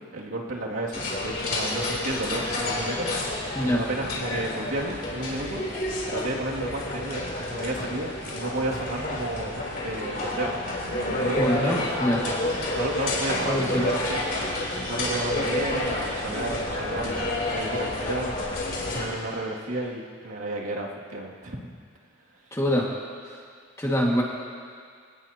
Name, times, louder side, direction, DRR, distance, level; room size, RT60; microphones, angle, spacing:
voice 1, 0.0-5.6 6.1-11.9 12.2-12.3 12.7-14.6 14.9-21.6, right 1 dB, 85° right, -3 dB, 2.6 m, -32 dB
sound 1, 0.9-19.1, left 1 dB, 45° left, 3.6 m, -29 dB
voice 2, 11.3-12.2 13.4-13.9 22.5-22.9 23.8-24.2, equal, 15° left, -2 dB, 2.0 m, -24 dB
26.5 x 18.0 x 2.9 m, 2.1 s
head